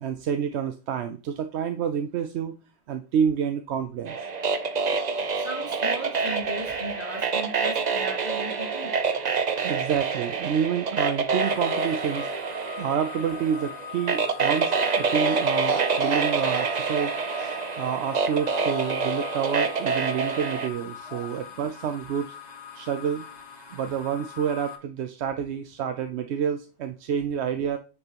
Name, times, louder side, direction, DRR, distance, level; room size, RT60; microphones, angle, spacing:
voice 1, 0.0-2.6 2.9-4.2 9.6-12.3 12.8-22.4 22.7-23.3 23.7-27.8, right 8 dB, 80° right, 8 dB, 0.9 m, -28 dB
sound 1, 4.1-20.7, right 5 dB, 45° right, 0.8 m, -27 dB
voice 2, 5.4-9.0 21.1-21.3, equal, 70° left, -1 dB, 2.3 m, -37 dB
sound 2, 11.4-24.8, left 8 dB, 40° left, 1.1 m, -42 dB
9.6 x 5.4 x 2.9 m, 0.33 s
omnidirectional pair, 1.1 m